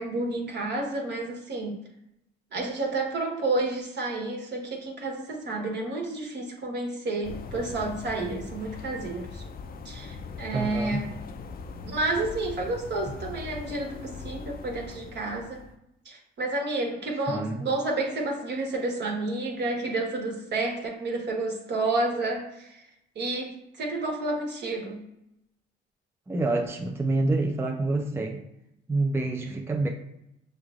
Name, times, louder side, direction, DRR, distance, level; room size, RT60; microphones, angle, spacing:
voice 1, 0.0-1.8 2.5-9.4 9.8-11.1 11.8-15.6 16.0-22.8 23.1-25.0, right 2 dB, 60° right, 0 dB, 1.2 m, -30 dB
sound 1, 7.2-15.7, left 4 dB, 50° left, 0.5 m, -40 dB
voice 2, 10.5-11.0 17.3-17.6 26.3-28.4 28.9-29.9, right 2 dB, 10° right, 3 dB, 0.4 m, -27 dB
6.3 x 3.2 x 2.4 m, 0.83 s
cardioid pair, 90°, 20 cm